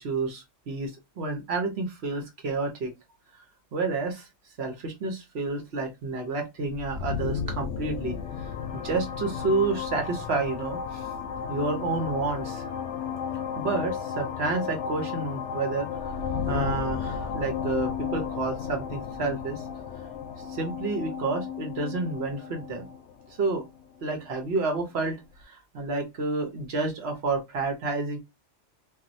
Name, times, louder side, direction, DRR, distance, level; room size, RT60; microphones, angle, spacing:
voice 1, 0.0-2.9 3.3-3.4 3.7-4.3 4.6-8.2 8.7-11.1 11.5-12.6 13.6-16.2 16.5-19.6 20.5-22.9 23.3-23.6 24.0-28.2, right 3 dB, 65° right, 4 dB, 1.1 m, -30 dB
sound 1, 6.7-24.3, left 7 dB, 80° left, 0.9 m, -33 dB
3.0 x 2.6 x 2.6 m, 0.21 s
omnidirectional pair, 1.2 m